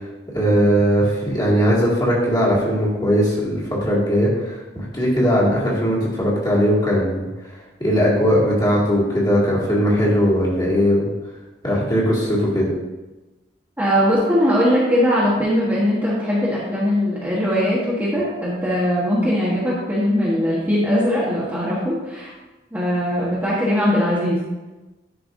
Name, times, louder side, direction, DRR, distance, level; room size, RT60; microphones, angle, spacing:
voice 1, 0.3-7.3 7.8-11.1 11.6-12.7, equal, 25° left, -7 dB, 2.0 m, -19 dB
voice 2, 13.8-22.3 22.7-24.4, equal, 10° right, -8 dB, 1.2 m, -20 dB
11.0 x 4.6 x 2.6 m, 1.1 s
head